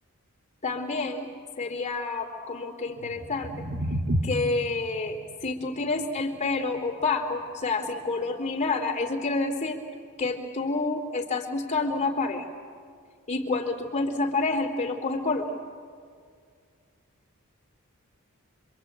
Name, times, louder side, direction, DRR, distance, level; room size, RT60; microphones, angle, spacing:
voice 1, 0.6-1.3 1.6-3.5 4.2-5.2 5.4-9.8 10.2-12.4 13.3-15.5, left 3 dB, 35° left, 1 dB, 3.2 m, -28 dB
sound 1, 2.9-9.0, equal, 55° right, 2.0 m, -34 dB
26.5 x 25.0 x 8.7 m, 2.2 s
head